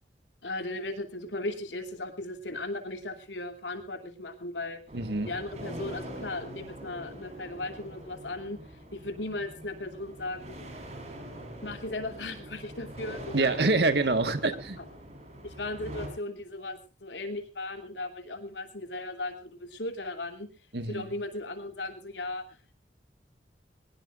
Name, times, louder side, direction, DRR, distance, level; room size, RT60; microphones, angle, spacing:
voice 1, 0.4-4.8 5.2-10.6 11.6-13.7 14.8-14.9 15.4-20.5 20.9-22.8, left 2 dB, 85° left, 6 dB, 2.9 m, -37 dB
sound 1, 4.9-16.1, equal, 40° right, 4.7 m, -43 dB
voice 2, 4.9-5.3 13.3-14.8 20.7-21.0, right 3 dB, 65° right, 9 dB, 1.6 m, -26 dB
22.0 x 19.5 x 2.5 m, 0.33 s
head